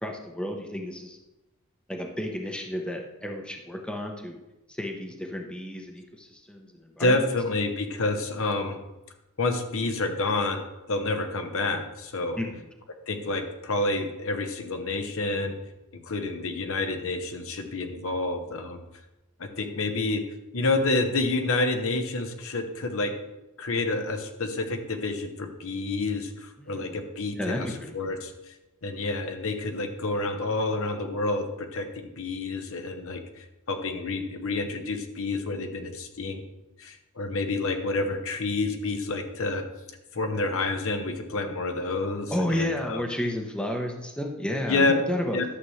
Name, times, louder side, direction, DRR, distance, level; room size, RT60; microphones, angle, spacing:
voice 1, 0.0-1.2 1.9-4.4 4.7-7.3 12.4-12.7 26.6-27.0 27.3-28.1 42.3-45.4, left 1 dB, 5° left, 2 dB, 0.8 m, -32 dB
voice 2, 7.0-8.8 9.4-10.6 10.9-12.4 13.1-15.5 16.0-18.8 19.4-20.2 20.5-23.1 23.6-27.7 27.9-28.5 28.8-36.4 36.8-39.6 40.1-43.0 44.7-44.9 45.3-45.4, left 2 dB, 65° left, 6 dB, 0.9 m, -28 dB
11.5 x 7.0 x 3.2 m, 1.0 s
head